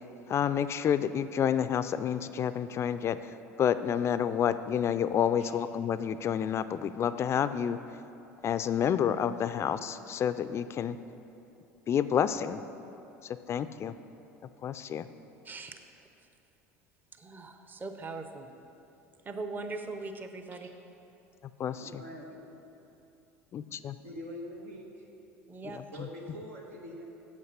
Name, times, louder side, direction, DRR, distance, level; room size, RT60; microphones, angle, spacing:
voice 1, 0.3-3.2 3.6-7.8 8.4-11.0 11.9-12.6 13.5-13.9 14.6-15.1 21.6-22.0 23.5-24.0, left 8 dB, 35° left, 13 dB, 0.3 m, -29 dB
voice 2, 15.4-15.8 17.2-18.5 19.2-20.7 25.5-25.8, right 3 dB, 25° right, 7 dB, 0.7 m, -40 dB
voice 3, 21.8-22.6 24.0-25.1 25.9-27.0, equal, 85° right, 0 dB, 1.4 m, -44 dB
8.5 x 7.2 x 5.5 m, 2.8 s
hypercardioid pair, 80°, 8 cm